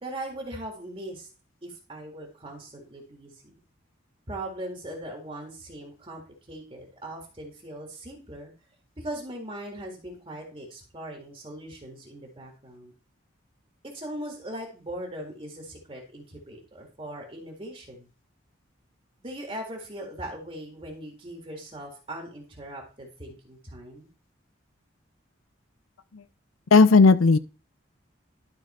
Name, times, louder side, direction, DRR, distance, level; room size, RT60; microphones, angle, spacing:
voice 1, 0.0-1.3 1.6-3.6 4.3-8.5 9.0-12.9 13.8-18.1 19.2-24.1, right 1 dB, 25° right, 1.9 m, -39 dB
voice 2, 26.7-27.4, left 4 dB, 85° left, 0.5 m, -15 dB
12.0 x 4.1 x 4.3 m
head